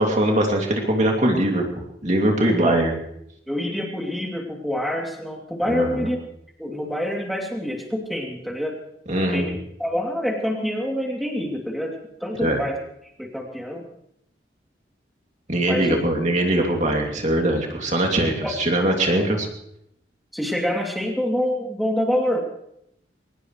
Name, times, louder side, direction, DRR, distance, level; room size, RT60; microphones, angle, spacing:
voice 1, 0.0-1.6 2.0-2.9 5.7-6.1 9.1-9.5 12.4-12.6 15.5-19.5, right 1 dB, 40° right, 1 dB, 2.7 m, -21 dB
voice 2, 2.5-2.8 3.5-6.2 6.6-8.8 9.2-12.8 13.2-13.9 15.7-16.0 18.4-18.6 19.2-19.3 20.3-22.4, equal, ahead, 0 dB, 2.8 m, -26 dB
22.5 x 19.5 x 3.2 m, 0.76 s
head